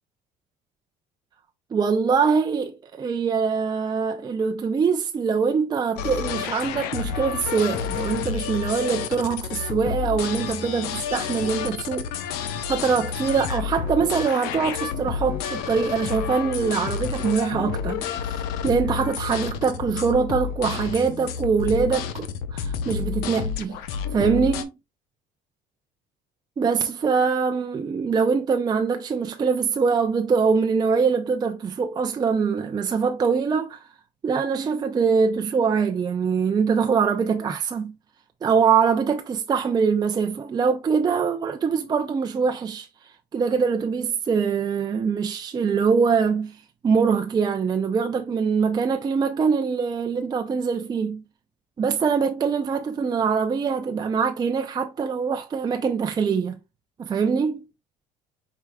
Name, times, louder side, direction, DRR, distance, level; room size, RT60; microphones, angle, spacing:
voice 1, 1.7-12.1 12.3-23.8 24.1-24.8 26.6-33.9 34.2-37.9 38.4-42.9 43.3-46.6 46.8-51.2 51.8-56.6 57.0-57.7, right 5 dB, 25° right, 0.5 m, -23 dB
sound 1, 6.0-24.6, left 7 dB, 85° left, 0.7 m, -30 dB
4.7 x 4.7 x 2.3 m
cardioid pair, 105°, 15 cm